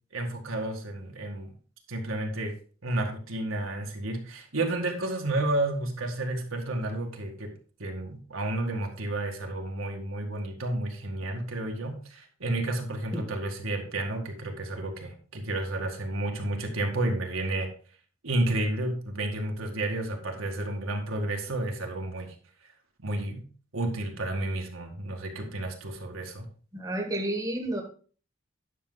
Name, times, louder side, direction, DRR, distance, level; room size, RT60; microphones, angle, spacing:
voice 1, 0.1-1.5 1.9-2.5 2.8-7.5 7.8-17.7 18.2-22.3 23.0-23.4 23.7-26.5, right 2 dB, 75° right, 1.9 m, -31 dB
voice 2, 26.7-27.8, right 1 dB, 15° right, 1.4 m, -30 dB
10.0 x 6.4 x 3.9 m
head